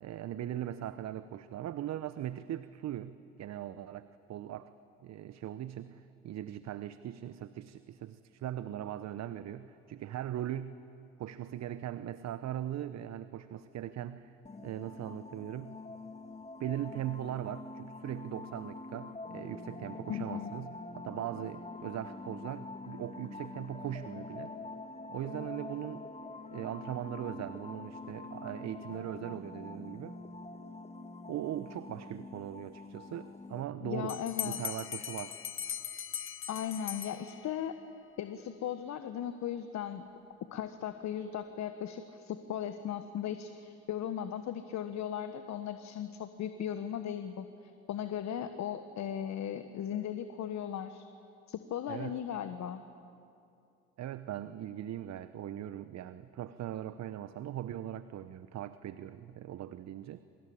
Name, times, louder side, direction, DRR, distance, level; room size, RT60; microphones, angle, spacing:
voice 1, 0.0-4.7 5.0-10.8 11.2-14.4 14.6-15.8 16.6-24.5 25.1-26.1 26.5-30.2 31.3-35.4 51.9-52.2 54.0-60.2, right 11 dB, 55° right, 13 dB, 0.9 m, -40 dB
sound 1, 14.4-33.6, left 3 dB, 20° left, 2.5 m, -45 dB
voice 2, 20.1-20.6 33.8-34.8 36.5-37.8 38.2-40.1 40.5-51.0 51.5-52.8, left 9 dB, 60° left, 9 dB, 1.4 m, -37 dB
Bell, 34.1-37.7, left 8 dB, 40° left, 1.2 m, -40 dB
26.5 x 25.0 x 8.7 m, 2.6 s
hypercardioid pair, 50°, 32 cm